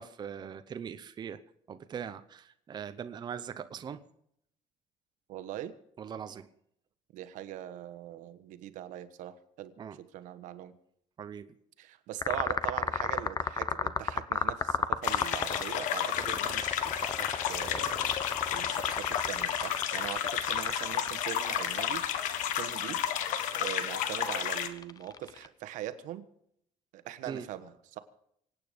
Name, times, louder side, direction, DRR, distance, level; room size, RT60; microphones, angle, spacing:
voice 1, 0.0-1.4 1.7-4.0 6.0-6.5 9.8-10.0 11.2-11.5 27.3-27.5, right 7 dB, 35° right, 10 dB, 0.8 m, -41 dB
voice 2, 5.3-5.7 7.1-10.8 11.8-22.1 22.5-23.0 23.6-26.3 26.9-28.0, right 12 dB, 80° right, 12 dB, 1.3 m, -41 dB
sound 1, 12.2-25.5, left 6 dB, 30° left, 0.8 m, -34 dB
sound 2, 15.0-24.7, left 10 dB, 85° left, 1.4 m, -32 dB
25.0 x 9.0 x 5.2 m, 0.72 s
cardioid pair, 135°, 13 cm